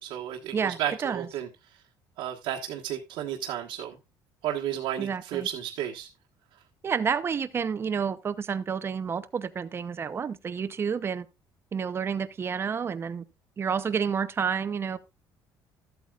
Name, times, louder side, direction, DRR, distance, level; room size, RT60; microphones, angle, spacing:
voice 1, 0.0-1.5 2.2-4.0 4.4-6.1, right 11 dB, 80° right, 1.4 m, -32 dB
voice 2, 0.5-1.3 5.0-5.5 6.8-11.3 11.7-13.2 13.6-15.0, right 6 dB, 30° right, 0.7 m, -30 dB
13.5 x 8.3 x 2.4 m
cardioid pair, 135°, 9 cm